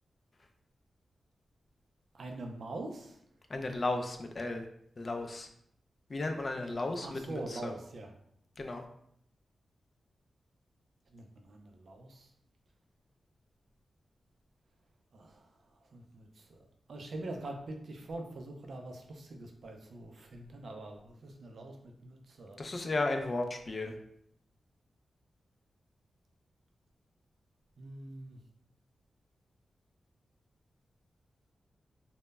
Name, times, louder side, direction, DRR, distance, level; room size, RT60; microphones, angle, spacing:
voice 1, 2.2-3.1 7.0-8.1 11.1-12.3 15.1-15.3 15.9-16.6 16.9-22.6 27.8-28.4, right 2 dB, 65° right, 3 dB, 0.4 m, -44 dB
voice 2, 3.5-4.6 5.0-5.5 6.1-7.7 8.6-8.8 22.6-23.9, left 2 dB, 40° left, 4 dB, 0.3 m, -34 dB
2.0 x 2.0 x 3.3 m, 0.70 s
wide cardioid pair, 110°, 0 cm